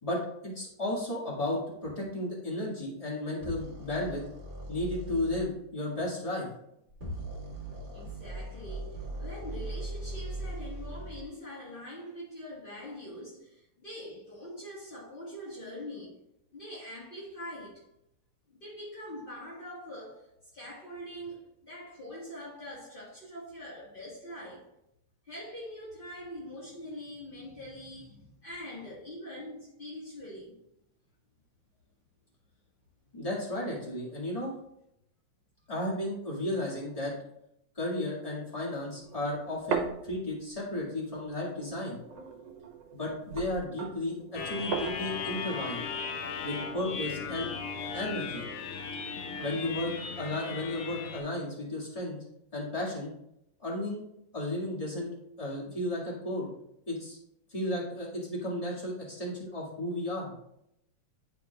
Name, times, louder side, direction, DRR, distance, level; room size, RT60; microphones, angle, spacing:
voice 1, 0.0-4.2 4.7-6.5 33.1-34.5 35.7-37.1 37.7-42.0 42.9-45.8 46.4-47.5 47.9-48.4 49.4-52.2 52.5-53.1 53.6-54.0 54.3-56.5 56.9-57.2 57.5-60.3, left 1 dB, 20° left, 1.1 m, -34 dB
sound 1, 3.4-5.4 6.9-11.2, right 1 dB, 30° right, 0.9 m, -39 dB
voice 2, 7.9-16.2 16.5-17.9 18.5-24.7 25.3-30.6, equal, 50° left, 0.6 m, -43 dB
sound 2, 39.0-40.8 41.2-47.1, right 6 dB, 65° right, 1.8 m, -39 dB
sound 3, 44.3-51.2, left 5 dB, 75° left, 2.0 m, -37 dB
10.5 x 4.8 x 2.2 m
omnidirectional pair, 3.4 m